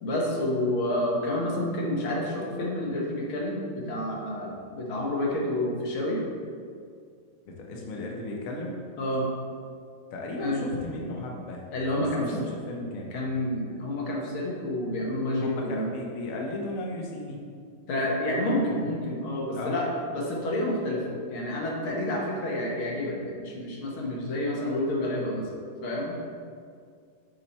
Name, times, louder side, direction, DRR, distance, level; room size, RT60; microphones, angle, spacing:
voice 1, 0.0-6.2 9.0-9.3 10.4-10.6 11.7-12.3 13.1-15.9 17.9-21.0 21.3-25.5 25.8-26.2, left 1 dB, 85° left, -2 dB, 2.0 m, -29 dB
voice 2, 7.5-8.7 10.1-11.7 12.2-13.1 15.4-17.4 19.5-19.8, left 2 dB, 55° left, -1 dB, 1.0 m, -35 dB
6.3 x 4.3 x 4.2 m, 2.2 s
omnidirectional pair, 2.2 m